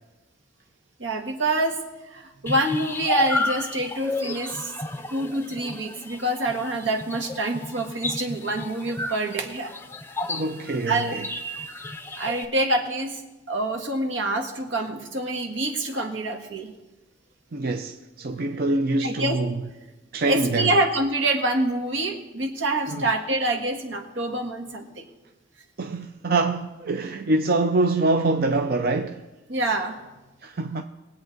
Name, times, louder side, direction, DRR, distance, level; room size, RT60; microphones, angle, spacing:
voice 1, 1.0-1.8 2.1-4.7 5.1-9.7 10.9-11.2 12.2-13.2 13.5-16.7 19.0-19.4 20.2-25.1 29.5-30.0, right 1 dB, 80° right, 1.7 m, -26 dB
sound 1, 2.5-12.5, left 2 dB, 10° left, 0.5 m, -32 dB
voice 2, 10.3-11.2 17.5-19.6 20.1-20.7 22.9-23.1 25.8-29.2 30.4-30.8, right 2 dB, 50° right, 0.5 m, -25 dB
22.0 x 8.2 x 4.0 m
head